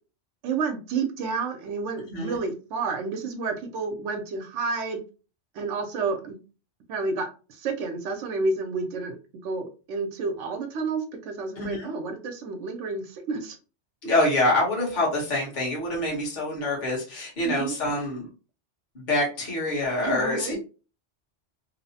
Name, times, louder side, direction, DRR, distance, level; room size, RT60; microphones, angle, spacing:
voice 1, 0.4-5.0 5.5-6.4 6.9-9.2 9.4-13.6 17.4-17.7 20.0-20.6, right 4 dB, 85° right, 5 dB, 0.9 m, -30 dB
voice 2, 11.6-11.9 14.0-18.3 18.9-20.6, left 1 dB, 45° left, -4 dB, 1.0 m, -26 dB
2.8 x 2.0 x 2.7 m, 0.34 s
omnidirectional pair, 1.2 m